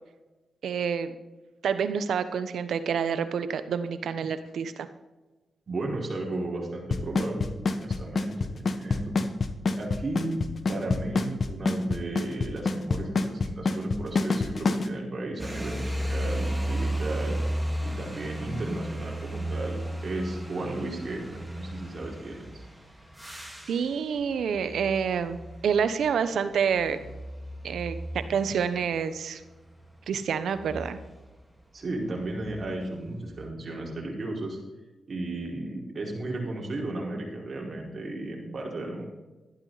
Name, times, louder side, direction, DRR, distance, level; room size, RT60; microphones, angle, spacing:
voice 1, 0.6-1.1 1.6-4.9 23.7-25.4 25.6-27.0 27.6-29.4 30.1-31.0, right 7 dB, 80° right, 11 dB, 1.0 m, -28 dB
voice 2, 5.7-9.1 9.8-10.4 10.7-17.4 17.8-22.6 31.7-34.6 35.1-39.0, right 2 dB, 50° right, -2 dB, 4.7 m, -34 dB
Drum kit / Snare drum / Bass drum, 6.9-14.9, left 4 dB, 55° left, 1.3 m, -25 dB
sound 1, 15.4-31.4 32.2-33.5, right 1 dB, 5° right, 3.8 m, -35 dB
13.5 x 11.5 x 4.1 m, 1.1 s
cardioid pair, 60°, 0 cm